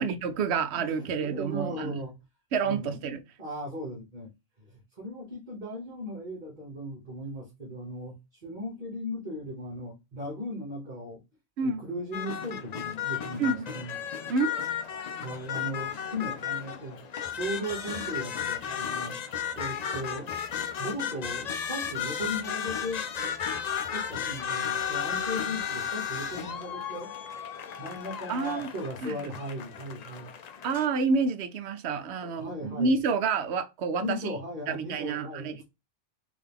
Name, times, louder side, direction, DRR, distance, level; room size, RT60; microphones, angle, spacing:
voice 1, 0.0-2.0 2.5-3.2 11.6-11.8 13.4-13.7 14.3-14.6 28.3-28.7 29.0-29.3 30.6-34.3 34.7-35.6, right 4 dB, 65° right, 0.8 m, -29 dB
voice 2, 1.0-2.1 2.6-3.0 3.4-4.3 4.6-11.2 11.6-14.0 15.2-17.0 17.3-20.3 20.8-23.3 23.9-27.1 27.8-30.3 32.1-32.9 34.0-35.6, equal, 40° right, 1.3 m, -37 dB
sound 1, 12.1-30.9, left 8 dB, 85° left, 0.3 m, -34 dB
3.8 x 2.6 x 3.4 m
omnidirectional pair, 1.3 m